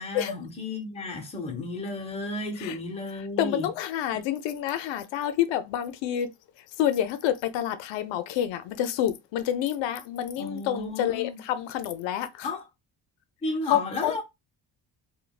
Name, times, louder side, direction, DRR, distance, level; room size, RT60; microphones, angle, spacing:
voice 1, 0.0-3.7 4.1-4.2 10.4-11.4 12.4-12.6 13.4-14.2, left 2 dB, 15° left, 0.6 m, -33 dB
voice 2, 3.4-6.3 6.8-12.5 13.7-14.2, left 11 dB, 80° left, 0.5 m, -28 dB
3.2 x 2.2 x 2.2 m
cardioid pair, 160°, 44 cm